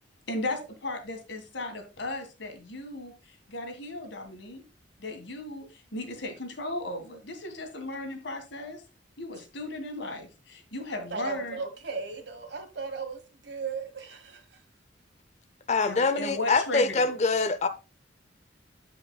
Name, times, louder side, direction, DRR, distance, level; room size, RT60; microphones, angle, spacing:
voice 1, 0.3-4.6 5.0-8.8 9.2-11.6 15.8-17.2, left 2 dB, 75° left, 1.9 m, -36 dB
voice 2, 10.9-14.4, right 4 dB, 65° right, 1.5 m, -36 dB
voice 3, 15.7-17.7, left 4 dB, 35° left, 0.7 m, -24 dB
15.0 x 5.1 x 2.4 m
head